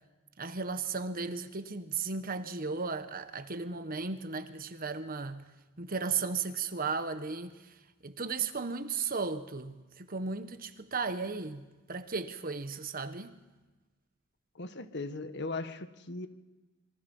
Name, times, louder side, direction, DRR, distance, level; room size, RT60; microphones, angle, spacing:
voice 1, 0.4-5.4 5.8-7.7 8.0-13.4, right 4 dB, 45° right, 1.4 m, -35 dB
voice 2, 14.5-16.3, left 3 dB, 60° left, 1.6 m, -38 dB
27.0 x 23.0 x 5.6 m
head